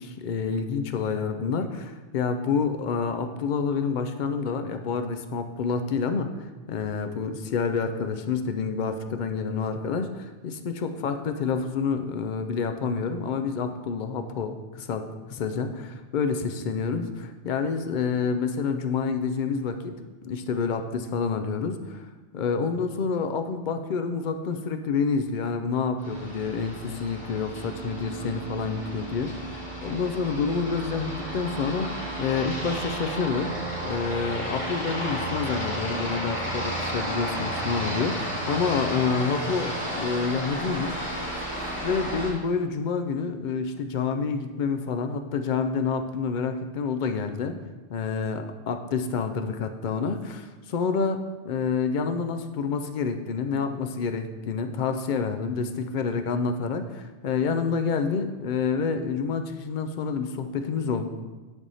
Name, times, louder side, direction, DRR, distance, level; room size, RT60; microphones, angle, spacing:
voice 1, 0.0-6.3 6.7-19.9 20.2-22.1 22.3-31.9 32.2-33.5 33.8-41.2 41.8-47.6 47.9-51.2 51.4-61.1, left 5 dB, 60° left, 8 dB, 0.5 m, -28 dB
Aircraft, 26.0-42.3, right 1 dB, 10° left, 2.3 m, -32 dB
10.5 x 3.5 x 4.1 m, 1.3 s
omnidirectional pair, 1.2 m